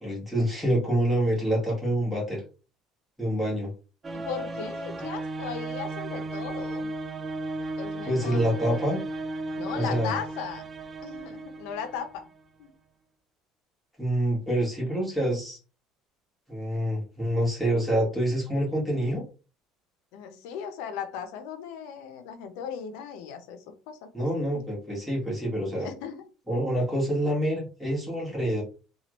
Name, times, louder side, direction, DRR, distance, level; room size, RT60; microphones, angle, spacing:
voice 1, 0.0-2.4 3.2-3.7 8.1-9.0 9.7-10.1 14.0-15.6 16.5-19.2 24.1-25.9 26.5-28.6, right 1 dB, ahead, -4 dB, 1.3 m, -26 dB
sound 1, 4.0-12.4, right 2 dB, 20° right, 0.3 m, -35 dB
voice 2, 4.1-6.9 7.8-8.5 9.6-10.7 11.0-12.3 12.6-12.7 20.1-24.1 25.8-26.3 26.8-26.9, left 7 dB, 85° left, 8 dB, 0.7 m, -37 dB
2.9 x 2.4 x 3.0 m, 0.33 s
cardioid pair, 150°, 0 cm